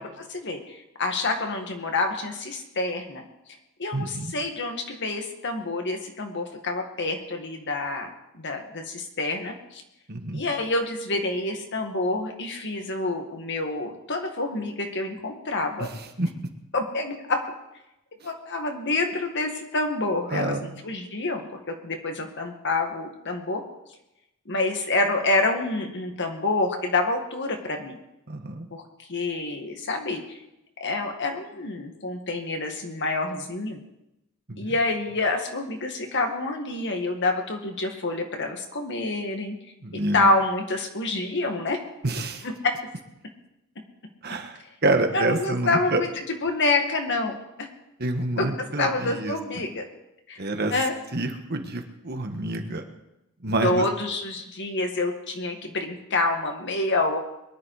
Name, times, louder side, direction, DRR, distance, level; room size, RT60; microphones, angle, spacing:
voice 1, 0.0-3.2 3.8-8.1 8.3-9.8 10.3-15.9 16.7-17.4 18.2-23.6 24.5-28.0 28.7-28.8 29.1-30.4 30.8-33.8 34.6-39.6 40.1-41.8 42.6-42.7 45.1-47.3 47.6-47.7 48.4-48.5 48.8-49.8 50.3-50.4 50.7-50.9 53.6-57.2, left 2 dB, 55° left, 4 dB, 2.0 m, -27 dB
voice 2, 3.9-4.3 10.1-10.4 15.8-16.3 20.3-20.7 28.3-28.7 34.5-34.7 39.8-40.3 42.0-42.4 44.2-46.0 48.0-49.6 50.4-50.7 51.1-52.8 53.4-53.8, right 2 dB, 45° right, 5 dB, 1.5 m, -28 dB
22.0 x 11.0 x 5.0 m, 0.90 s
head